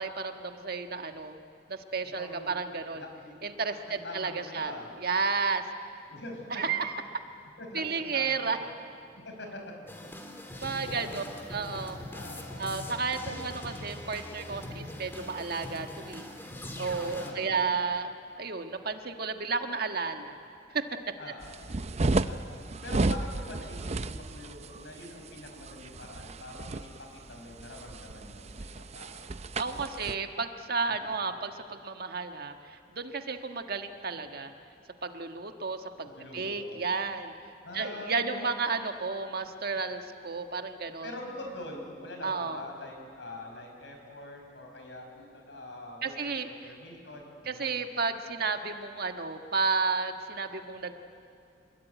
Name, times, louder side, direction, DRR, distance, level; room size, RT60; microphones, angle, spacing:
voice 1, 0.0-1.4 1.7-3.0 3.4-4.7 5.0-5.7 6.5-7.0 7.7-8.6 10.6-11.2 11.5-12.0 12.6-16.3 16.8-20.4 20.7-20.9 29.6-34.5 35.0-37.3 37.7-41.1 42.2-42.6 46.0-46.5 47.5-50.9, right 4 dB, 60° right, 6 dB, 1.5 m, -32 dB
voice 2, 2.1-2.6 3.0-3.5 3.9-4.9 6.1-6.6 7.6-8.7 9.2-10.1 10.9-11.4 12.1-12.7 13.3-13.5 14.6-15.1 17.1-17.7 21.2-21.8 22.2-29.3 29.9-30.4 30.9-31.2 36.0-36.7 37.6-38.5 41.0-46.4 46.6-47.8, left 1 dB, 75° left, 3 dB, 5.6 m, -44 dB
sound 1, 9.9-17.3, left 1 dB, 15° left, 2.4 m, -42 dB
sound 2, 21.4-30.1, right 2 dB, 35° right, 0.6 m, -33 dB
26.0 x 21.5 x 9.4 m, 2.4 s
head